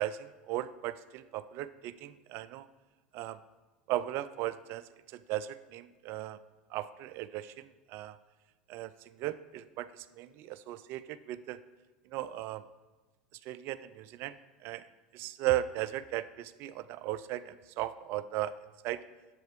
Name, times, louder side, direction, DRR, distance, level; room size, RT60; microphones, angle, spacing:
voice 1, 0.0-2.7 3.1-3.4 3.9-6.4 6.7-8.2 8.7-11.6 12.1-12.7 13.4-18.6 18.8-19.0, right 14 dB, 50° right, 15 dB, 0.4 m, -37 dB
10.5 x 7.5 x 3.1 m, 1.2 s
hypercardioid pair, 75°, 5 cm